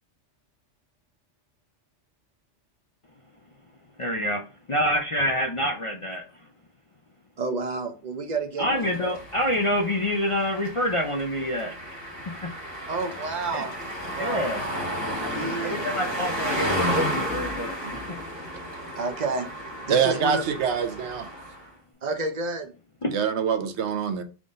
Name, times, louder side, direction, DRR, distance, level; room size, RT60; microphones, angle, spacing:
voice 1, 4.0-4.4 4.7-6.2 8.6-11.7 12.4-12.5 13.5-13.7 14.2-14.6 15.2-18.2 23.0-23.1, equal, 45° left, 0.4 m, -27 dB
voice 2, 7.4-8.7 12.9-14.5 15.1-15.8 18.9-20.6 22.0-22.7, right 3 dB, 45° right, 0.6 m, -30 dB
sound 1, 8.7-21.7, equal, 15° right, 2.2 m, -32 dB
voice 3, 19.9-21.3 23.1-24.2, right 7 dB, 75° right, 0.9 m, -25 dB
3.8 x 3.7 x 3.8 m
omnidirectional pair, 1.2 m